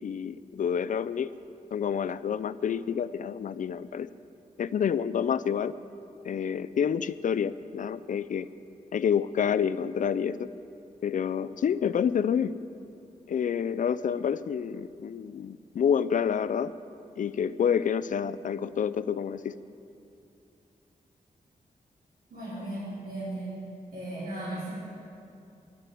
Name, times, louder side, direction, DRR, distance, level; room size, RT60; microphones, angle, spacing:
voice 1, 0.0-1.3 1.7-4.1 4.6-5.7 6.2-8.5 8.9-10.5 11.0-12.6 13.3-16.7 17.2-19.6, left 7 dB, 60° left, 14 dB, 0.4 m, -28 dB
voice 2, 22.3-23.5 23.9-24.7, right 1 dB, 85° right, -8 dB, 4.3 m, -36 dB
11.5 x 9.7 x 9.3 m, 2.6 s
wide cardioid pair, 125°, 15 cm